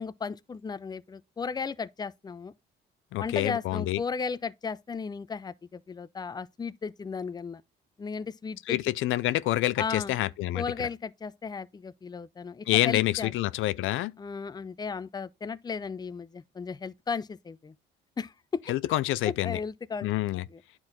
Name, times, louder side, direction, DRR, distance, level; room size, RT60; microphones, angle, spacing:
voice 1, 0.0-2.5 3.2-7.6 8.0-8.8 9.8-10.1 10.5-13.3 14.2-17.7 18.2-18.6 19.3-20.6, left 5 dB, 20° left, 0.5 m, -35 dB
voice 2, 3.1-4.0 8.7-10.6 12.7-14.1 18.7-19.6 20.0-20.4, left 15 dB, 80° left, 0.4 m, -27 dB
9.5 x 4.5 x 3.7 m
cardioid pair, 90°, 20 cm